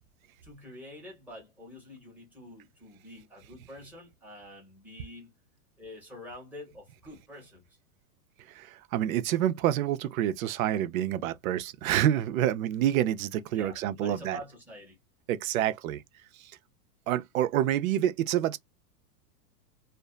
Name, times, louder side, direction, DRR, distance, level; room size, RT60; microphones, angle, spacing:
voice 1, 0.4-5.3 5.8-7.7 13.5-15.0, left 1 dB, 5° right, 0.9 m, -47 dB
voice 2, 8.5-14.4 15.3-16.0 16.4-16.5 17.1-18.6, right 12 dB, 65° right, 0.5 m, -28 dB
2.5 x 2.2 x 2.2 m
supercardioid pair, 155°, 46 cm